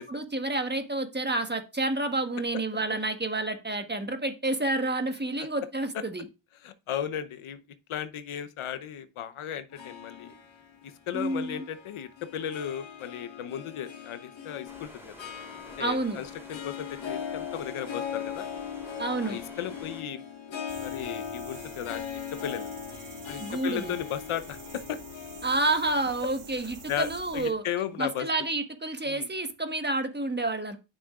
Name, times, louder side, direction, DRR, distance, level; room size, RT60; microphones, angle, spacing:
voice 1, 0.0-6.2 11.1-11.6 15.8-16.2 19.0-19.4 23.4-23.9 25.4-27.6 28.0-30.8, right 2 dB, 20° right, 1.3 m, -29 dB
voice 2, 6.6-7.6 7.9-10.3 10.8-15.1 15.8-18.5 19.2-20.2 20.8-22.7 23.3-25.0 26.9-27.1 27.3-28.3 29.0-29.3, left 9 dB, 80° left, 0.8 m, -35 dB
Harp, 9.7-28.2, left 8 dB, 65° left, 1.6 m, -40 dB
sound 1, 14.7-20.0, equal, 5° right, 2.9 m, -50 dB
sound 2, 20.7-27.5, right 5 dB, 90° right, 1.6 m, -48 dB
9.2 x 6.1 x 2.4 m
cardioid pair, 55°, 49 cm